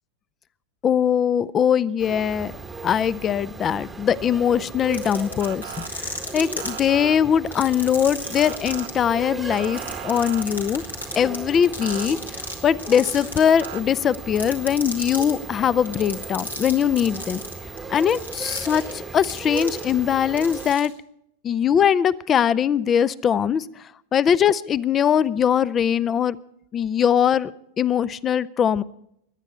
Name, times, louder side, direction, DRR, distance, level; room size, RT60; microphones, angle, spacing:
voice 1, 0.8-2.5 2.8-10.8 11.2-17.4 17.9-20.9 21.4-23.6 24.1-26.4 26.7-27.5 27.8-28.8, left 8 dB, 25° left, 21 dB, 0.5 m, -21 dB
sound 1, 2.0-20.7, right 3 dB, 10° right, 1.0 m, -37 dB
sound 2, 4.8-6.8 7.5-8.9 9.5-12.5 12.8-13.8 14.1-15.3 15.9-20.1 20.4-20.9, left 2 dB, 85° left, 2.6 m, -33 dB
Motor vehicle (road) / Siren, 5.4-5.9 6.6-7.2 8.4-8.9 9.5-10.5 11.8-12.1 13.6-13.8, right 16 dB, 55° right, 0.9 m, -37 dB
23.0 x 10.5 x 4.3 m, 0.76 s
figure-of-eight pair, 90°, 0 cm